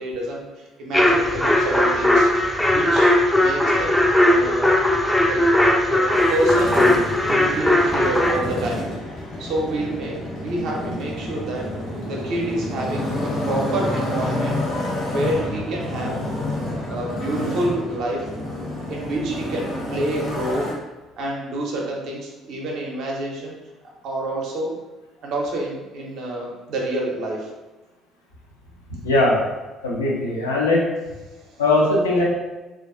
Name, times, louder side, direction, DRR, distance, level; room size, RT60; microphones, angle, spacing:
voice 1, 0.0-2.3 2.7-4.0 4.3-4.8 5.2-5.4 5.8-8.9 9.4-11.7 12.1-14.6 15.1-16.2 16.9-18.3 18.9-20.7 21.2-23.5 24.0-24.8 25.2-27.5 31.4-31.6, right 1 dB, 60° right, -1 dB, 0.5 m, -28 dB
sound 1, 0.9-8.4, left 1 dB, 5° left, 0.4 m, -18 dB
Motorcycle, 6.1-20.7, left 1 dB, 55° left, 0.8 m, -29 dB
voice 2, 29.0-29.4 29.8-30.9 31.6-32.2, left 2 dB, 80° left, -3 dB, 0.4 m, -19 dB
2.3 x 2.2 x 2.4 m, 1.1 s
figure-of-eight pair, 50°, 0 cm